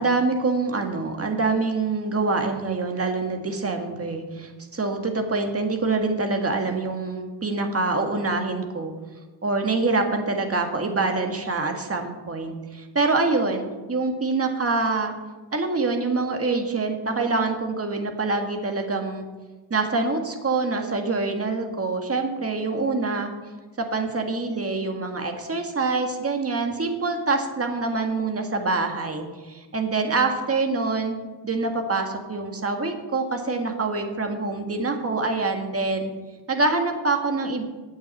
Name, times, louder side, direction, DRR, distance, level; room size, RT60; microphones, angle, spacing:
voice 1, 0.0-8.9 9.4-15.1 15.5-19.3 19.7-23.3 23.8-31.1 31.4-36.1 36.5-37.6, right 3 dB, 30° right, 4 dB, 1.9 m, -25 dB
9.1 x 8.6 x 8.5 m, 1.2 s
wide cardioid pair, 120°, 44 cm